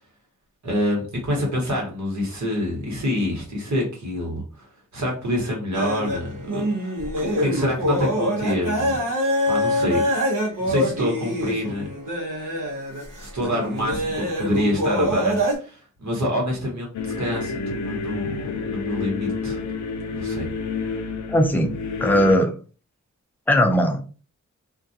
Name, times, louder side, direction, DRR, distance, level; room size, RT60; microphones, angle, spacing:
voice 1, 0.6-9.0 9.5-10.3 10.6-11.9 13.2-16.9 17.2-18.4 18.7-19.6 20.1-20.5, left 1 dB, 65° right, -1 dB, 1.1 m, -27 dB
sound 1, 5.7-15.5, equal, 85° right, 0.8 m, -25 dB
sound 2, 16.9-22.4, left 4 dB, 70° left, 0.4 m, -29 dB
voice 2, 21.3-21.7 22.0-22.5 23.5-24.0, equal, 5° left, 4 dB, 0.4 m, -18 dB
2.3 x 2.2 x 2.6 m, 0.36 s
wide cardioid pair, 95°, 31 cm